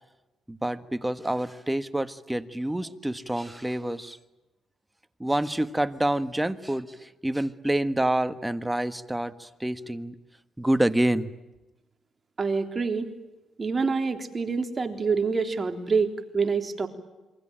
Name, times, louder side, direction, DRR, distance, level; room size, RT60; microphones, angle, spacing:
voice 1, 0.5-4.2 5.2-10.1 10.6-11.3, right 1 dB, 10° right, 12 dB, 1.5 m, -27 dB
voice 2, 12.4-13.1 13.6-16.9, right 4 dB, 30° right, 6 dB, 3.5 m, -26 dB
28.0 x 23.5 x 8.9 m, 1.1 s
cardioid pair, 90°, 0 cm